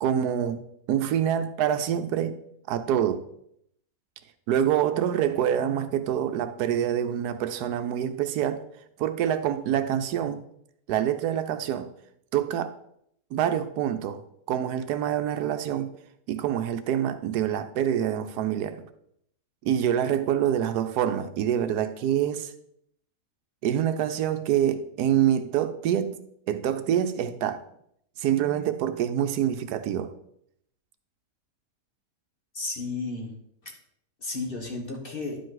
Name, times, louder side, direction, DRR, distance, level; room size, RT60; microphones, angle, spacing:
voice 1, 0.0-0.6 0.9-2.4 2.7-3.2 4.5-8.6 9.0-10.4 10.9-11.9 12.3-12.7 13.3-14.2 14.5-15.9 16.3-18.8 19.6-22.5 23.6-26.2 26.5-27.6 28.2-30.1, right 10 dB, 80° right, 1.1 m, -26 dB
voice 2, 32.5-33.3 34.2-35.4, left 3 dB, 40° left, 1.2 m, -33 dB
10.5 x 5.1 x 3.9 m
omnidirectional pair, 1.7 m